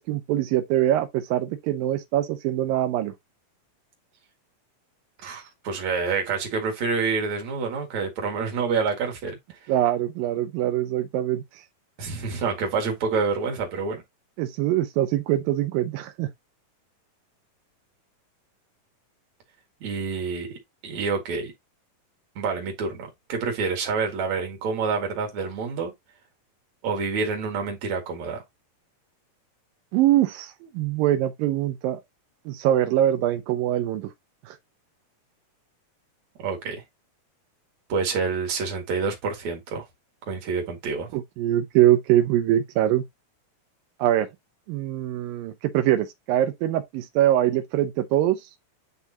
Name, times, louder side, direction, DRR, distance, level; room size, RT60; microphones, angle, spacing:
voice 1, 0.0-3.1 9.7-11.4 14.4-16.3 29.9-32.0 32.5-34.1 34.5-34.6 41.1-43.0 44.0-44.3 44.7-48.4, right 12 dB, 90° right, 2.6 m, -23 dB
voice 2, 5.2-9.4 12.0-14.0 19.8-20.5 20.8-21.5 22.4-25.9 26.8-28.4 36.4-36.8 37.9-39.8 40.3-41.1, right 5 dB, 55° right, 3.0 m, -27 dB
9.5 x 3.6 x 2.8 m
omnidirectional pair, 3.9 m